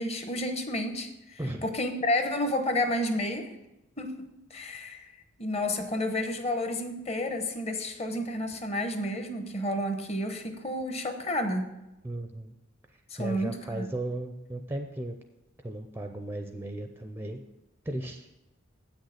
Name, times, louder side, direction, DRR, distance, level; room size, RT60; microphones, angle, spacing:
voice 1, 0.0-3.5 4.0-4.2 4.5-5.1 5.4-11.7 13.1-13.9, left 1 dB, 30° left, 6 dB, 0.9 m, -31 dB
voice 2, 1.4-1.7 12.0-12.5 12.9-15.1 15.6-17.4 17.9-18.3, right 1 dB, 10° right, 5 dB, 0.4 m, -36 dB
8.2 x 6.4 x 6.4 m, 0.96 s
head